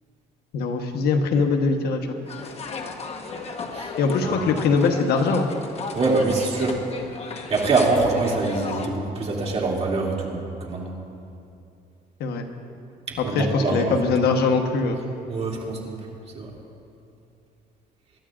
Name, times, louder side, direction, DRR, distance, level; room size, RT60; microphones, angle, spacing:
voice 1, 0.5-2.2 4.0-5.5 12.2-12.4 13.2-15.1, left 4 dB, 70° left, 4 dB, 1.2 m, -22 dB
sound 1, 2.3-8.9, left 4 dB, 40° left, 1.2 m, -34 dB
voice 2, 5.9-6.8 7.5-10.9 13.1-13.9 15.3-16.5, right 3 dB, 40° right, -3 dB, 2.7 m, -24 dB
25.0 x 12.5 x 2.5 m, 2.6 s
cardioid pair, 110°, 17 cm